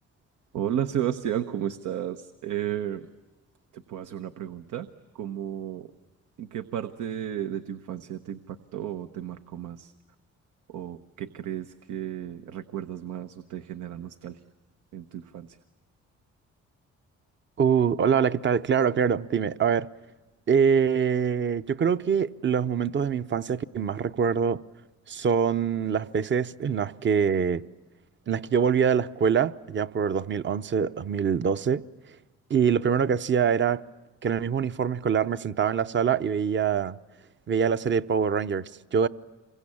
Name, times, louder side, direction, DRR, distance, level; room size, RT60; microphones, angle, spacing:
voice 1, 0.5-3.1 3.7-4.9 5.1-5.9 6.4-9.9 10.7-14.4 14.9-15.6, right 10 dB, 85° right, 1.0 m, -33 dB
voice 2, 17.6-19.9 20.5-24.6 25.1-27.6 28.3-31.8 32.5-33.8 34.2-37.0 37.5-39.1, right 7 dB, 40° right, 0.8 m, -24 dB
27.5 x 23.5 x 8.6 m
cardioid pair, 90°, 30 cm